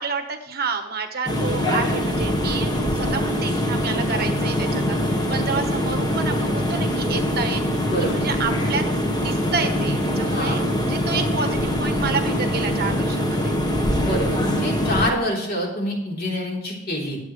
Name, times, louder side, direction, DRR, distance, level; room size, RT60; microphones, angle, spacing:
voice 1, 0.0-8.8 9.2-13.5, right 4 dB, 50° right, 6 dB, 1.3 m, -29 dB
sound 1, 1.3-15.1, equal, 20° left, 1.3 m, -23 dB
voice 2, 7.8-8.3 10.2-10.7 14.0-17.2, equal, 50° left, -2 dB, 3.7 m, -26 dB
20.5 x 7.9 x 3.3 m, 0.89 s
head